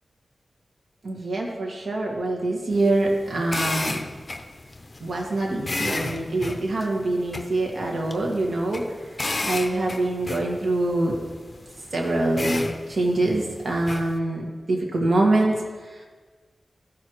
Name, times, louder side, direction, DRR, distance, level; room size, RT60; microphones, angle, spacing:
voice 1, 1.0-4.0 5.0-11.2 11.9-15.6 15.8-16.1, right 2 dB, 70° right, -1 dB, 1.9 m, -25 dB
sound 1, 2.7-14.2, left 2 dB, 40° left, 0.7 m, -34 dB
14.5 x 6.6 x 3.1 m, 1.4 s
cardioid pair, 60°, 0 cm